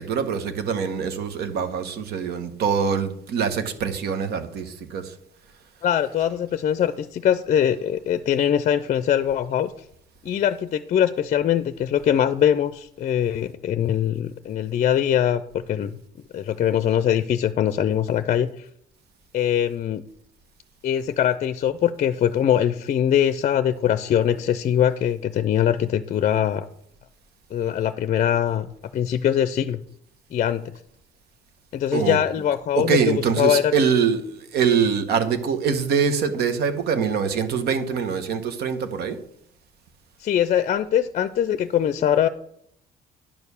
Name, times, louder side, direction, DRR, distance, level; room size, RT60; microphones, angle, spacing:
voice 1, 0.0-5.1 31.9-32.2 32.7-39.2, right 6 dB, 70° right, 9 dB, 1.2 m, -24 dB
voice 2, 5.8-9.7 10.2-16.0 16.3-18.7 19.3-20.0 20.8-26.7 27.5-29.8 30.3-30.6 31.7-33.7 40.2-42.3, left 10 dB, 45° left, 13 dB, 0.5 m, -22 dB
10.5 x 4.5 x 6.9 m, 0.70 s
cardioid pair, 110°, 17 cm